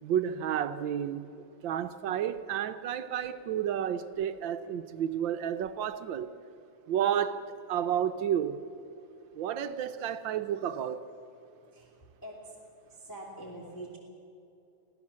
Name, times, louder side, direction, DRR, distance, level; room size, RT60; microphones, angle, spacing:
voice 1, 0.0-1.3 1.6-6.3 6.9-7.4 7.7-8.6 9.3-11.0, right 9 dB, 70° right, 1.4 m, -31 dB
voice 2, 11.7-12.6 12.9-14.0, right 1 dB, 10° left, 2.8 m, -45 dB
23.0 x 15.5 x 7.4 m
omnidirectional pair, 2.3 m